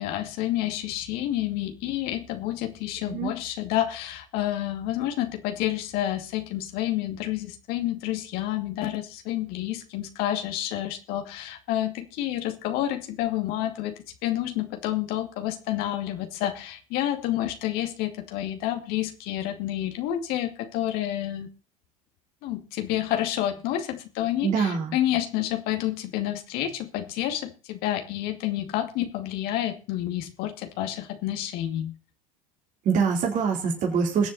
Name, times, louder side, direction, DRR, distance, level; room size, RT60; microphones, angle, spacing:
voice 1, 0.0-21.5 22.4-31.9, left 13 dB, 65° left, 6 dB, 2.4 m, -29 dB
voice 2, 3.0-3.3 24.4-25.0 32.8-34.3, right 6 dB, 50° right, 1 dB, 4.2 m, -24 dB
22.0 x 7.5 x 4.2 m, 0.35 s
hypercardioid pair, 85°, 17 cm